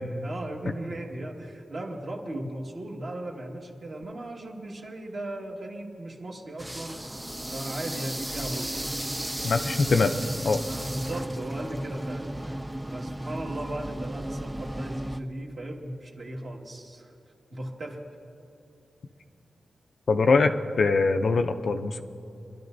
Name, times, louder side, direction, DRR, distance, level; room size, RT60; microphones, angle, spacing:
voice 1, 0.2-7.2 7.5-8.8 10.6-12.6 12.9-17.2 17.5-18.1, right 1 dB, 45° right, 0 dB, 1.7 m, -37 dB
sound 1, 6.6-15.2, right 1 dB, 10° right, 0.3 m, -34 dB
voice 2, 9.4-10.1 10.4-10.6 20.1-22.0, left 4 dB, 55° left, 7 dB, 0.5 m, -23 dB
25.5 x 12.0 x 2.6 m, 2.8 s
wide cardioid pair, 145°, 0 cm